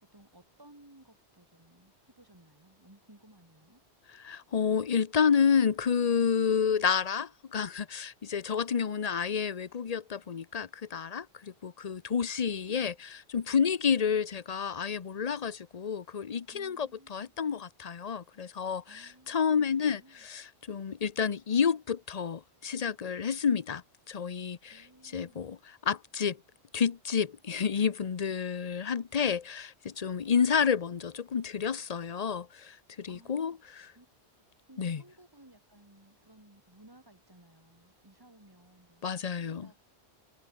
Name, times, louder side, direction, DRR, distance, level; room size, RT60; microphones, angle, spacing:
voice 1, 0.1-3.8 16.5-17.1 18.9-20.3 24.7-25.4 33.1-33.6 33.9-34.1 34.4-39.8, right 1 dB, 20° right, 3.5 m, -58 dB
voice 2, 4.1-24.8 25.1-26.4 26.7-33.9 34.8-35.0 39.0-39.7, left 6 dB, 40° left, 0.8 m, -30 dB
omnidirectional pair, 1.1 m